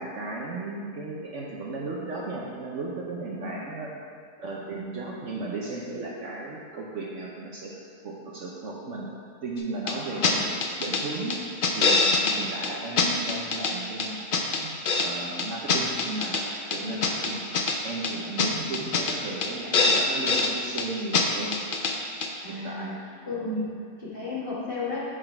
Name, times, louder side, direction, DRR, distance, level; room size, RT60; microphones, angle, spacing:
voice 1, 0.0-3.9 4.4-7.7 8.0-9.1 9.4-10.4 10.8-11.4 11.7-12.0 12.4-14.2 14.5-16.4 16.7-17.4 17.8-21.6 22.5-23.0 23.4-23.7, right 2 dB, 60° right, -3 dB, 1.0 m, -35 dB
sound 1, 9.9-10.0 10.2-10.3 10.6-11.0 11.3-12.4 12.6-12.7 13.0-13.7 14.0-15.1 15.4-16.4 16.7-17.8 18.0-18.1 18.4-18.5 18.7-19.2 19.4-19.5 19.7-20.5 20.8-20.9 21.1-21.2 21.5-21.9 22.2-22.3, left 4 dB, 75° left, 0.4 m, -23 dB
voice 2, 10.1-10.4 12.2-12.4 16.8-17.0 18.6-18.8 22.4-23.0 23.3-23.5 24.0-25.0, left 4 dB, 35° left, -8 dB, 1.8 m, -34 dB
6.5 x 5.9 x 4.4 m, 2.1 s
omnidirectional pair, 1.7 m